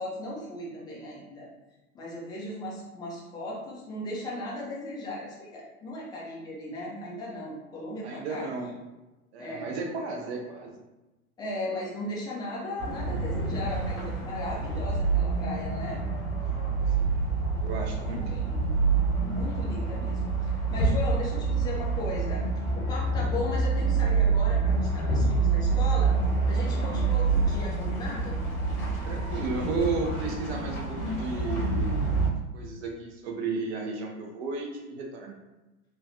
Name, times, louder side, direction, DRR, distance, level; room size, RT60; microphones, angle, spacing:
voice 1, 0.0-1.5 1.9-8.5 9.4-9.7 11.4-16.0 17.9-18.7 19.3-22.4 22.7-26.1 26.5-28.4, left 1 dB, 10° left, -5 dB, 0.5 m, -37 dB
voice 2, 8.0-8.7 9.3-10.7 16.4-16.6 17.0-17.2 17.6-18.3 26.7-26.8 29.1-32.2 32.5-35.4, right 4 dB, 45° right, 1 dB, 0.7 m, -34 dB
sound 1, 12.8-32.3, right 4 dB, 75° left, 1.2 m, -27 dB
3.2 x 2.3 x 2.6 m, 1.1 s
figure-of-eight pair, 95°, 44 cm